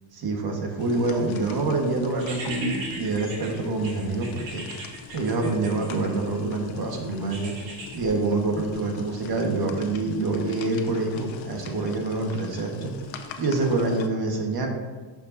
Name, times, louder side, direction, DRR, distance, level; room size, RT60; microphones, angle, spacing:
voice 1, 0.1-4.6 5.1-7.5 7.9-12.9 13.4-14.7, right 2 dB, 55° right, 2 dB, 1.5 m, -26 dB
sound 1, 0.8-14.1, left 6 dB, 85° left, 0.9 m, -43 dB
sound 2, 2.2-6.4 7.3-8.0, right 2 dB, 80° right, 2.5 m, -38 dB
12.0 x 5.4 x 2.7 m, 1.3 s
cardioid pair, 130°, 45 cm